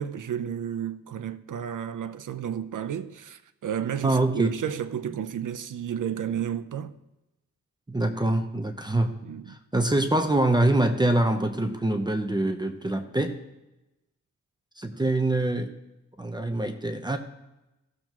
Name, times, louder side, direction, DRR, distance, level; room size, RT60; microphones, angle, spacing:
voice 1, 0.0-6.9 9.2-9.6, right 9 dB, 75° right, 0.7 m, -32 dB
voice 2, 4.0-4.5 7.9-9.2 9.5-13.4 14.8-15.7 16.2-17.2, right 2 dB, 15° right, 0.8 m, -25 dB
17.0 x 7.2 x 3.0 m
wide cardioid pair, 105°, 31 cm